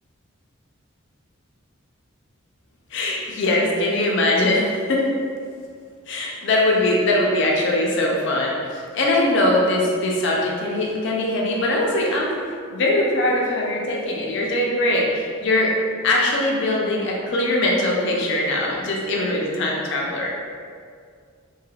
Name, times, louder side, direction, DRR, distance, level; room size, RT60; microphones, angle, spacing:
voice 1, 2.9-5.1 6.1-12.4 12.7-15.8 16.0-20.3, left 1 dB, 60° left, -2 dB, 0.4 m, -21 dB
3.2 x 2.7 x 2.3 m, 2.1 s
head